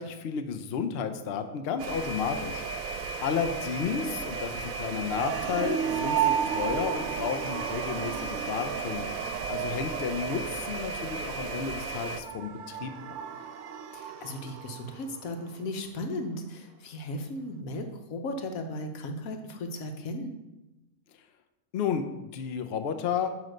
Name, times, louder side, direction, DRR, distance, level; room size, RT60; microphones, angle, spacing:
voice 1, 0.0-2.6 3.2-9.1 9.5-12.9 21.7-22.0 22.3-23.3, left 7 dB, 60° left, 8 dB, 0.7 m, -32 dB
sound 1, 1.8-12.2, right 4 dB, 85° right, 1.0 m, -35 dB
sound 2, 5.2-15.3, right 9 dB, 70° right, 0.8 m, -34 dB
voice 2, 13.9-20.4, left 1 dB, 90° left, 5 dB, 1.3 m, -36 dB
9.0 x 3.2 x 6.3 m, 1.0 s
omnidirectional pair, 1.4 m